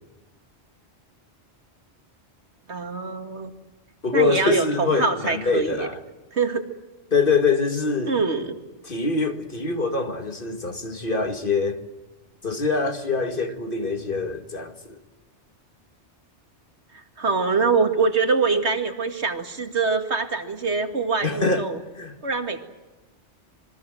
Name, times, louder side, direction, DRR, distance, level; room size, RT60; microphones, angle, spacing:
voice 1, 2.7-3.5 4.1-5.9 6.3-6.6 8.1-8.6 16.9-21.8 22.2-22.6, right 4 dB, 75° right, 2.4 m, -24 dB
voice 2, 4.0-6.0 7.1-8.2 8.8-11.8 12.4-15.0 21.2-21.7 22.0-22.2, left 4 dB, 50° left, 2.0 m, -24 dB
26.0 x 22.0 x 7.8 m
omnidirectional pair, 1.2 m